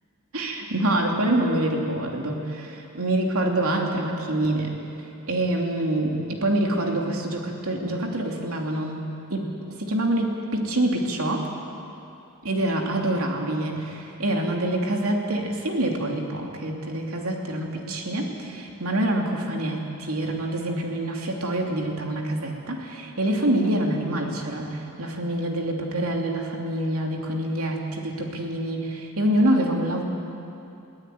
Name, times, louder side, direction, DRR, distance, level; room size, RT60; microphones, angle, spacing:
voice 1, 0.3-4.7 5.3-9.5 9.8-11.5 12.4-30.0, right 1 dB, 70° right, 1 dB, 2.9 m, -26 dB
22.5 x 15.5 x 9.3 m, 2.9 s
head